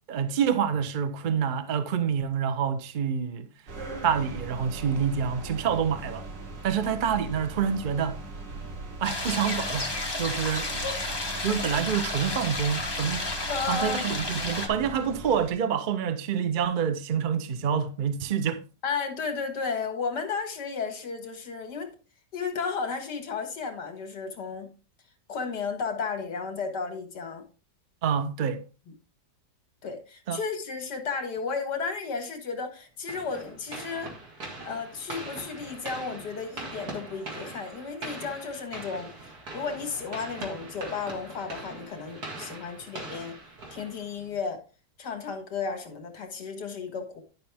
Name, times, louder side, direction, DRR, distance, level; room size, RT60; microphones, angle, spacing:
voice 1, 0.1-3.5 4.0-6.3 6.6-8.2 9.0-10.7 11.4-18.6 28.0-28.6 30.3-30.4, right 7 dB, 45° right, 0.6 m, -27 dB
sound 1, 3.7-15.5, right 3 dB, 90° right, 2.4 m, -40 dB
sound 2, 9.0-14.7, left 2 dB, 15° left, 1.2 m, -32 dB
voice 2, 13.5-14.2 18.8-21.9 22.3-24.7 25.3-27.4 28.9-29.0 29.8-34.1 34.6-39.1 39.5-43.4 43.7-44.6 45.0-47.2, left 5 dB, 75° left, 2.1 m, -33 dB
sound 3, 33.1-44.4, right 2 dB, 60° right, 2.6 m, -41 dB
11.0 x 5.7 x 3.5 m
omnidirectional pair, 1.9 m